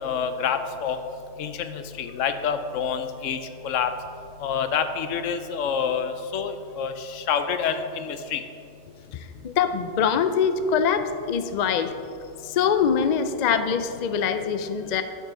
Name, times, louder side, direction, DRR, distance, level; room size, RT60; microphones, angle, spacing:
voice 1, 0.0-1.0 1.4-3.4 3.6-3.9 4.4-8.4, left 7 dB, 85° left, 9 dB, 1.0 m, -27 dB
voice 2, 9.1-11.9 12.4-15.0, left 7 dB, 65° left, 9 dB, 0.4 m, -24 dB
12.5 x 5.4 x 3.7 m, 2.6 s
omnidirectional pair, 1.3 m